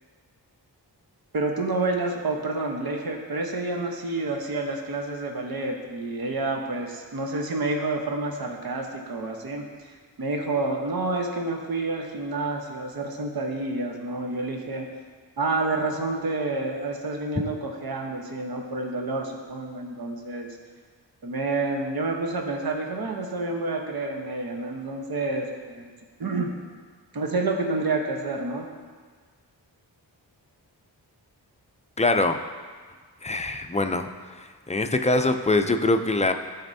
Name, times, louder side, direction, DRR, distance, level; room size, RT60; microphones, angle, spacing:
voice 1, 1.3-9.9 10.2-14.9 15.4-20.5 21.2-25.9 26.2-26.5 27.1-28.7, right 2 dB, 55° right, 2 dB, 1.0 m, -29 dB
voice 2, 32.0-32.4 33.2-34.1 34.4-36.3, left 2 dB, 15° left, 7 dB, 0.5 m, -23 dB
12.5 x 4.3 x 2.7 m, 1.5 s
cardioid pair, 50°, 43 cm